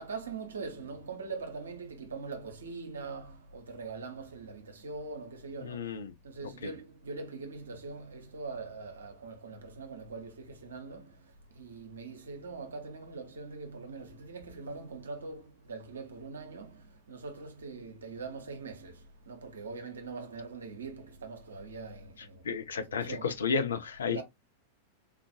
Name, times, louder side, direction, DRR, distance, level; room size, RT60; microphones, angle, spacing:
voice 1, 0.0-5.9 6.2-22.5 22.7-23.3 24.1-24.2, right 4 dB, 70° right, 0.8 m, -42 dB
voice 2, 5.6-6.1 6.6-6.7 22.4-24.2, left 5 dB, 70° left, 0.5 m, -32 dB
3.7 x 2.4 x 2.6 m
figure-of-eight pair, 90°, 0 cm